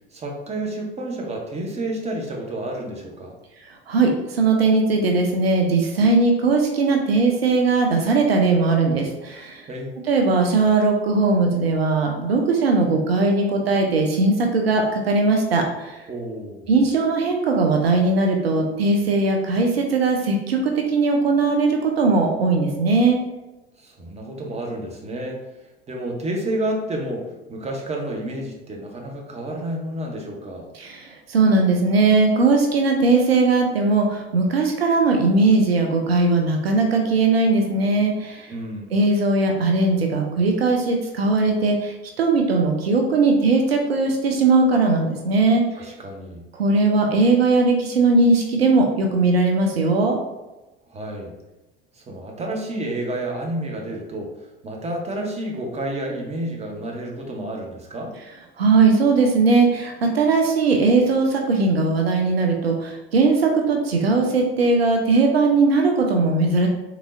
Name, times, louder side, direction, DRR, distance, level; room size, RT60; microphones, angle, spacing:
voice 1, 0.1-3.3 9.7-9.9 16.1-16.7 23.8-25.4 25.9-30.6 38.5-38.9 45.8-46.4 50.9-51.3 51.9-54.3 54.6-58.1, right 1 dB, 20° right, 0 dB, 0.8 m, -30 dB
voice 2, 3.9-9.6 10.1-16.0 16.7-23.2 30.8-38.5 38.9-45.6 46.5-50.2 58.6-66.7, right 3 dB, 85° right, 2 dB, 0.5 m, -19 dB
3.6 x 3.0 x 2.5 m, 1.0 s
figure-of-eight pair, 65°, 30 cm